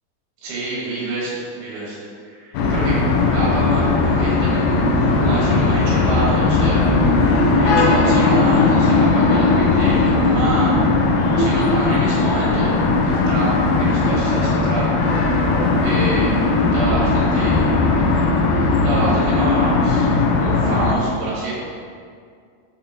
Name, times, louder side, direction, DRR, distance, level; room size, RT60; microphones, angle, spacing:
voice 1, 0.4-2.0 2.2-3.0 3.3-7.0 7.5-14.9 15.2-15.5 15.8-17.8 18.5-21.5, right 2 dB, 85° right, -7 dB, 3.5 m, -27 dB
sound 1, 2.5-20.9, left 3 dB, 80° left, 2.6 m, -17 dB
7.3 x 5.4 x 2.9 m, 2.1 s
omnidirectional pair, 4.4 m